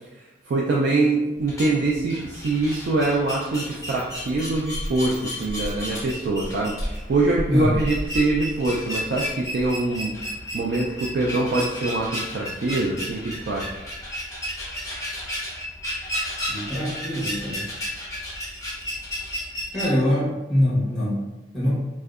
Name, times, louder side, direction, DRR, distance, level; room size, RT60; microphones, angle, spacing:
voice 1, 0.2-10.2 10.5-13.8, right 2 dB, 65° right, -4 dB, 0.3 m, -24 dB
sound 1, 1.4-19.9, equal, 15° left, 0.6 m, -32 dB
voice 2, 16.5-17.6 19.7-21.7, left 1 dB, ahead, -9 dB, 1.0 m, -24 dB
2.6 x 2.1 x 2.3 m, 1.0 s
head